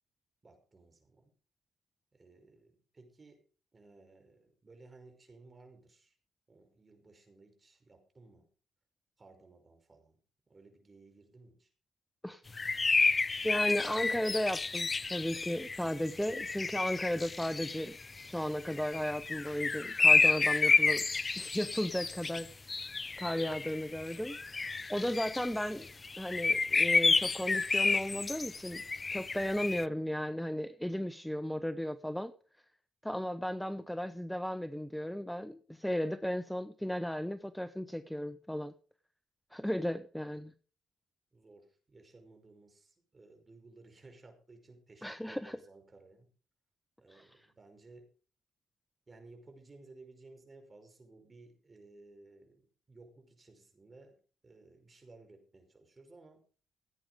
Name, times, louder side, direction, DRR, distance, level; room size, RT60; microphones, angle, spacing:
voice 1, 0.4-1.3 2.1-3.4 3.7-6.2 6.5-8.5 9.2-10.2 10.5-11.7 41.3-46.3 47.0-48.1 49.1-54.2 54.4-56.4, right 3 dB, 25° right, 5 dB, 5.5 m, -57 dB
sound 1, 12.6-18.3 18.6-29.9, left 4 dB, 30° left, 0.5 m, -30 dB
voice 2, 12.9-18.0 18.2-21.0 21.4-22.5 23.2-25.9 26.2-28.8 29.1-32.3 33.0-38.7 39.5-40.5 45.0-45.6 47.1-47.3, equal, 5° left, 12 dB, 0.8 m, -35 dB
16.5 x 8.8 x 5.0 m, 0.39 s
cardioid pair, 90°, 0 cm